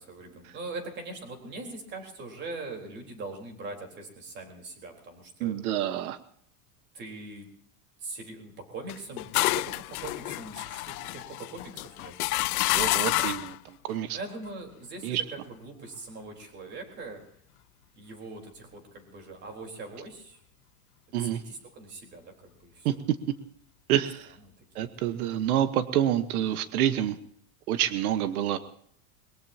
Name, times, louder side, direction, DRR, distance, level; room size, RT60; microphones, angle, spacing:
voice 1, 0.0-5.6 6.9-7.5 8.0-12.3 14.1-17.2 18.0-20.4 21.1-22.9 24.6-25.1, right 3 dB, 25° right, 3 dB, 3.9 m, -42 dB
voice 2, 5.4-6.2 12.7-14.2 15.0-15.2 21.1-21.4 22.8-22.9 23.9-24.3 24.7-27.2 27.7-28.6, right 11 dB, 80° right, 11 dB, 1.3 m, -27 dB
sound 1, 8.9-13.6, left 20 dB, 90° left, 0.5 m, -29 dB
22.5 x 22.0 x 2.8 m, 0.67 s
supercardioid pair, 160°, 43 cm